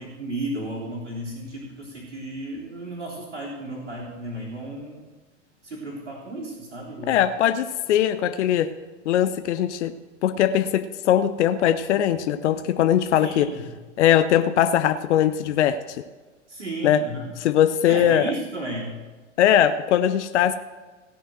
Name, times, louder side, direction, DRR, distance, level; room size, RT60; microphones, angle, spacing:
voice 1, 0.0-5.0 5.6-7.2 13.2-13.7 16.5-17.3 17.9-19.0, right 1 dB, 85° right, -6 dB, 3.5 m, -34 dB
voice 2, 7.1-8.7 9.1-9.9 10.2-13.5 14.0-16.0 16.8-17.0 17.4-18.3 19.4-20.5, left 10 dB, 70° left, 11 dB, 0.7 m, -20 dB
16.5 x 5.5 x 7.8 m, 1.3 s
hypercardioid pair, 100°, 36 cm